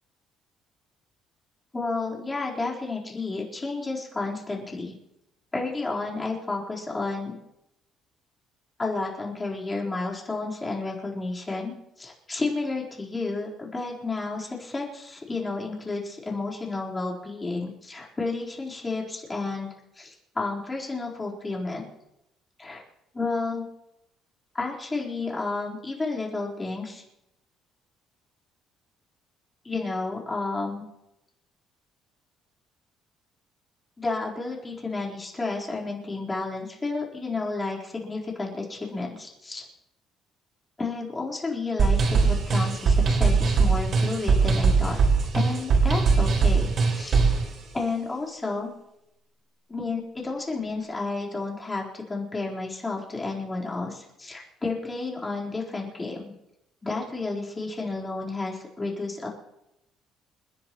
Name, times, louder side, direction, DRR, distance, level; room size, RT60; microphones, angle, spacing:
voice 1, 1.7-4.9 5.5-7.4 8.8-19.7 19.9-21.9 22.6-22.8 23.1-23.6 24.5-27.0 29.6-30.8 34.0-39.6 40.8-45.0 45.3-47.2 47.7-48.7 49.7-56.3 56.8-59.3, left 3 dB, 20° left, -3 dB, 4.2 m, -31 dB
sound 1, 41.8-47.4, right 4 dB, 50° right, 5.2 m, -21 dB
29.5 x 10.5 x 3.1 m, 0.87 s
cardioid pair, 120°, 0 cm